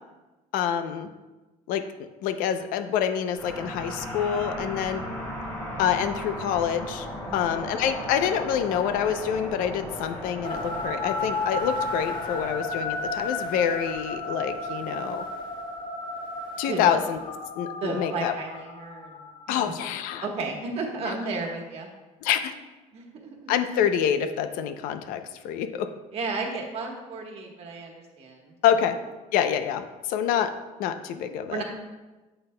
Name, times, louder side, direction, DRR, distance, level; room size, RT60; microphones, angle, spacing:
voice 1, 0.5-1.1 1.7-1.8 2.2-5.0 5.8-7.1 7.3-15.2 16.6-17.2 17.6-18.3 19.5-20.3 21.1-21.2 22.2-22.5 23.5-25.9 28.6-29.0 29.3-30.5 30.8-31.6, left 9 dB, 85° left, 9 dB, 0.6 m, -26 dB
sound 1, 3.4-16.0, equal, 20° left, 2.4 m, -37 dB
voice 2, 7.3-7.6 16.7-16.8 17.8-19.7 20.2-21.9 22.9-23.5 25.7-25.8 26.1-28.8 31.5-31.6, right 3 dB, 45° right, 1 dB, 1.3 m, -34 dB
sound 2, 10.4-19.9, left 2 dB, 35° left, 0.9 m, -33 dB
9.0 x 7.8 x 2.2 m, 1.2 s
cardioid pair, 155°, 14 cm